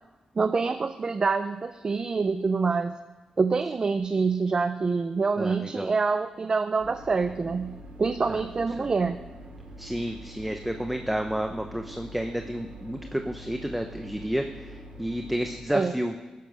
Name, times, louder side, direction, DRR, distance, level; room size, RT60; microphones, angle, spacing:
voice 1, 0.4-3.0 3.4-9.2 15.7-15.9, right 4 dB, 35° right, 10 dB, 0.6 m, -26 dB
voice 2, 5.4-5.9 8.3-8.4 8.8-8.9 9.8-16.1, equal, 5° right, 4 dB, 0.8 m, -31 dB
sound 1, 6.8-15.6, equal, 70° right, 3.9 m, -44 dB
16.0 x 10.5 x 6.3 m, 1.2 s
wide cardioid pair, 115°, 2 cm